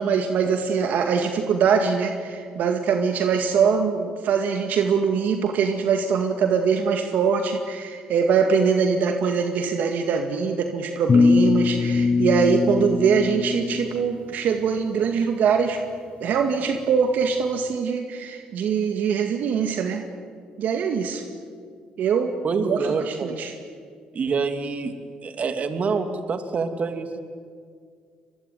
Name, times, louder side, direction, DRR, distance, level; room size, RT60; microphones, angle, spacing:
voice 1, 0.0-15.8 16.2-20.0 20.6-21.2 22.0-22.3 22.6-23.5, right 6 dB, 70° right, 5 dB, 2.1 m, -23 dB
sound 1, 11.1-14.2, left 4 dB, 40° left, 1.1 m, -21 dB
voice 2, 22.4-23.3 24.1-24.9 25.2-27.2, right 4 dB, 50° right, 7 dB, 2.7 m, -26 dB
25.5 x 21.5 x 9.4 m, 2.1 s
supercardioid pair, 70°, 3 cm